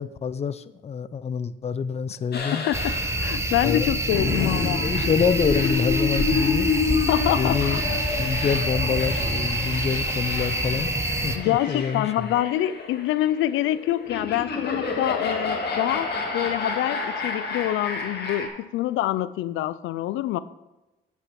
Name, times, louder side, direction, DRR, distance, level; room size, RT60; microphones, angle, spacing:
voice 1, 0.0-2.6 3.6-3.9 4.2-6.7 7.3-7.8 8.2-10.9 11.2-12.3, left 6 dB, 30° left, 15 dB, 0.5 m, -26 dB
sound 1, 2.3-18.5, left 5 dB, 55° left, 2.1 m, -29 dB
voice 2, 2.5-4.8 7.1-7.8 11.3-20.4, left 13 dB, 85° left, 15 dB, 0.4 m, -26 dB
sound 2, 2.7-11.4, right 2 dB, 15° right, 1.0 m, -27 dB
9.7 x 6.0 x 5.9 m, 1.0 s
cardioid pair, 90°, 20 cm